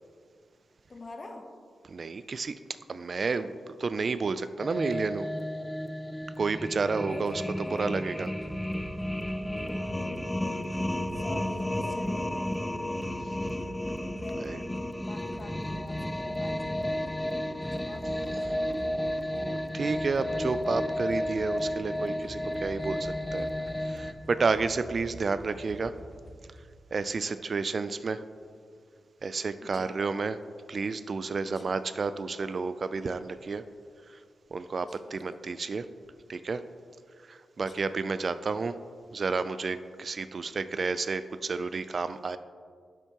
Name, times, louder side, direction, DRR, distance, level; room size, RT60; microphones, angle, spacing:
voice 1, 0.9-1.5 7.1-8.0 9.6-10.1 11.2-12.5 14.2-14.4 15.0-17.0 17.6-18.6 29.6-30.0 31.4-31.7 34.8-35.4 37.7-37.8, left 2 dB, 45° left, 4 dB, 1.0 m, -46 dB
voice 2, 1.9-2.5 2.9-3.5 3.8-5.3 6.4-7.4 7.7-8.3 14.4-14.6 18.4-18.6 19.4-23.5 23.8-25.9 26.9-28.2 29.2-30.4 30.7-33.6 34.5-35.8 36.3-36.6 37.3-38.7 39.1-42.4, right 4 dB, 55° right, 12 dB, 0.3 m, -31 dB
sound 1, 4.6-24.1, left 1 dB, 10° left, 0.5 m, -32 dB
sound 2, 8.4-26.8, right 1 dB, 5° right, 1.0 m, -47 dB
9.0 x 7.3 x 2.9 m, 2.1 s
cardioid pair, 60°, 0 cm